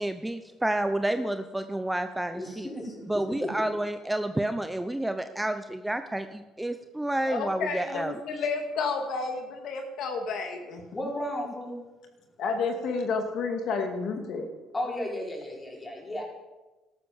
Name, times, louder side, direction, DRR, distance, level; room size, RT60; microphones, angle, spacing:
voice 1, 0.0-2.7 3.1-8.2, right 1 dB, 10° right, 9 dB, 0.8 m, -30 dB
voice 2, 2.3-3.5 10.9-11.8 14.7-16.2, left 1 dB, 20° left, -1 dB, 5.1 m, -34 dB
voice 3, 7.3-10.8 12.4-14.5, left 4 dB, 65° left, 4 dB, 2.4 m, -31 dB
13.0 x 12.5 x 7.2 m, 1.1 s
cardioid pair, 105°, 0 cm